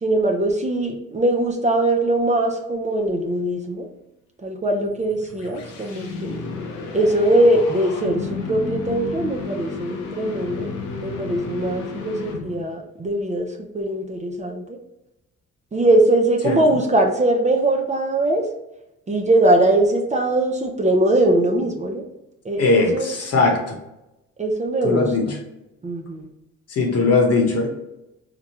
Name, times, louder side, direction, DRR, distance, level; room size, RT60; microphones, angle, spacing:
voice 1, 0.0-3.9 4.4-6.4 6.9-10.7 11.0-14.8 15.7-18.5 19.1-22.0 22.4-23.1 24.4-25.4 25.8-26.3, right 1 dB, 25° right, 1 dB, 0.6 m, -21 dB
sound 1, 5.0-12.8, left 4 dB, 85° left, 0.8 m, -32 dB
voice 2, 22.6-23.8 24.8-25.3 26.7-27.7, left 3 dB, 55° left, 2 dB, 1.1 m, -19 dB
4.7 x 2.3 x 2.9 m, 0.92 s
cardioid pair, 90°, 30 cm